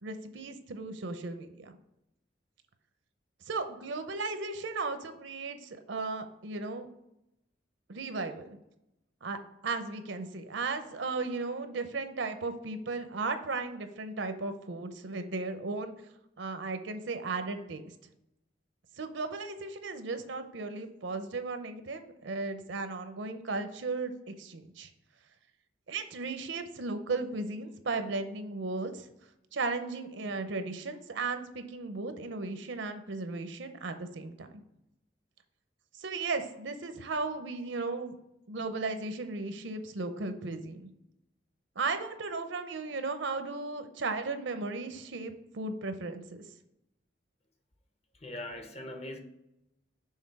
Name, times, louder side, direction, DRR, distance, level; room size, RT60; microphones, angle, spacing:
voice 1, 0.0-1.8 3.5-6.9 7.9-8.6 9.2-9.4 9.6-15.9 16.4-17.8 19.0-24.9 25.9-29.1 29.5-34.5 36.0-38.2 38.5-40.8 41.8-46.4, right 3 dB, 75° right, 9 dB, 0.7 m, -35 dB
voice 2, 48.2-49.2, left 1 dB, 35° left, 6 dB, 0.8 m, -40 dB
6.5 x 3.6 x 4.7 m, 0.86 s
head